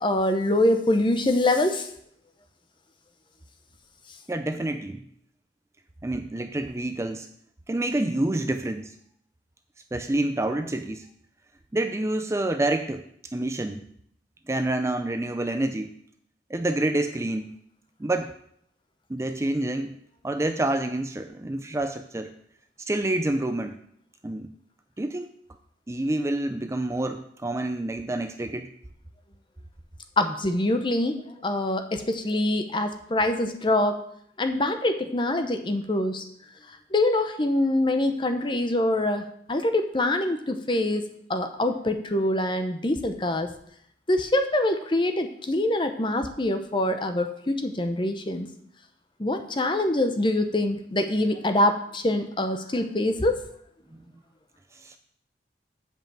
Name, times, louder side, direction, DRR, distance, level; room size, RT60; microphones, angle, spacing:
voice 1, 0.0-1.9 30.2-34.0 34.4-36.2 36.9-43.5 44.1-48.5 49.2-53.4, left 1 dB, 25° left, 7 dB, 0.8 m, -24 dB
voice 2, 4.3-5.0 6.0-7.3 7.7-8.9 9.9-11.1 11.7-13.1 13.3-13.8 14.5-15.9 16.5-17.5 18.0-18.4 19.1-20.0 20.2-22.3 22.8-23.8 24.2-24.5 25.0-25.3 25.9-28.7 53.9-54.0 54.7-55.0, right 1 dB, 15° right, 8 dB, 0.4 m, -28 dB
7.4 x 5.4 x 7.4 m, 0.68 s
head